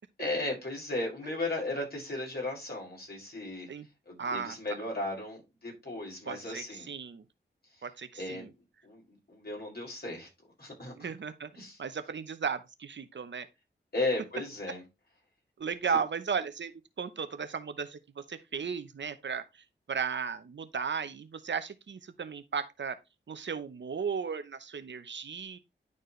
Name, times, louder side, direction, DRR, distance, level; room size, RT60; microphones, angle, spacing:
voice 1, 0.2-3.7 4.1-6.9 8.2-8.5 8.8-10.3 10.6-11.1 11.6-11.8 13.9-14.8, left 2 dB, 55° left, 5.6 m, -35 dB
voice 2, 4.2-4.6 6.3-7.2 7.8-8.5 11.0-11.5 11.8-13.5 15.6-16.7 17.0-19.4 19.9-23.0 23.3-25.6, right 6 dB, 70° right, 0.8 m, -35 dB
11.0 x 4.4 x 3.2 m
cardioid pair, 50°, 20 cm